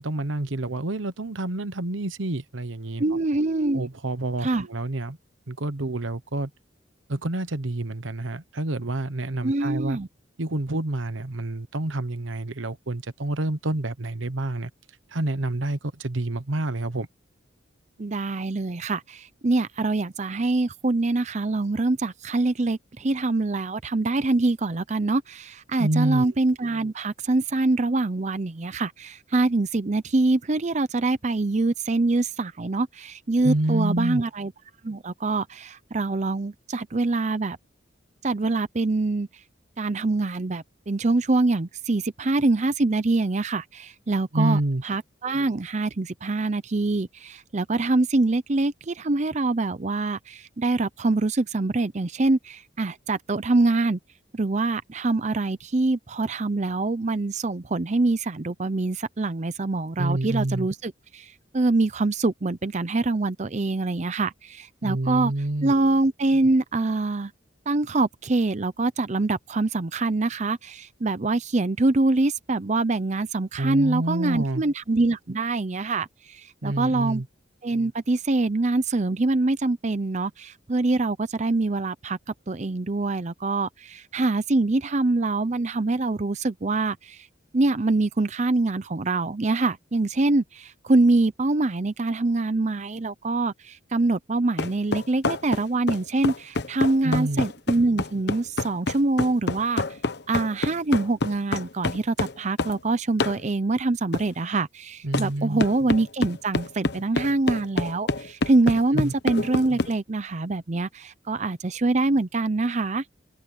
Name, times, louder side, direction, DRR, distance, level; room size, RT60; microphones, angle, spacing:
voice 1, 0.0-3.0 3.7-5.2 5.5-6.5 7.1-10.0 10.4-14.7 15.1-17.1 25.8-26.3 33.4-34.2 44.3-44.8 60.0-60.7 64.8-65.7 73.6-74.6 76.6-77.3 97.0-97.5 105.0-105.6 108.9-109.1, right 1 dB, 85° right, 1.2 m, -28 dB
voice 2, 3.0-3.9 4.4-4.7 9.4-10.1 18.0-34.5 34.8-37.6 38.2-39.3 39.8-44.6 44.8-54.0 54.3-65.3 65.6-67.3 67.7-77.2 77.6-82.2 82.5-87.3 87.5-99.8 100.3-113.0, right 2 dB, 40° right, 0.6 m, -24 dB
sound 1, 94.6-102.8 103.2-103.4 104.1-104.3 105.1-105.3 105.6-109.9, left 2 dB, 60° left, 1.1 m, -27 dB
head